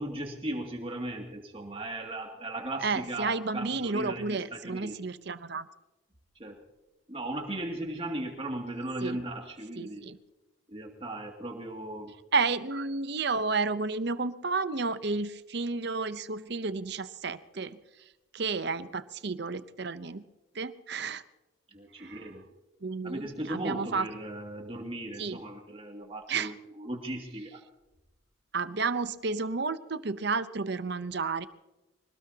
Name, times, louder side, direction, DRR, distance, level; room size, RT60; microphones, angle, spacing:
voice 1, 0.0-5.0 6.4-6.6 7.1-10.0 10.7-12.1 21.7-22.5 23.0-27.6, right 1 dB, 25° right, 1 dB, 2.4 m, -37 dB
voice 2, 2.8-5.7 9.0-9.2 9.8-10.2 12.3-17.8 18.3-20.2 20.5-21.2 22.0-22.3 22.8-23.2 23.5-24.1 25.2-25.4 26.3-26.5 28.5-31.5, right 4 dB, 55° right, 13 dB, 0.8 m, -31 dB
25.0 x 19.0 x 2.9 m, 1.0 s
head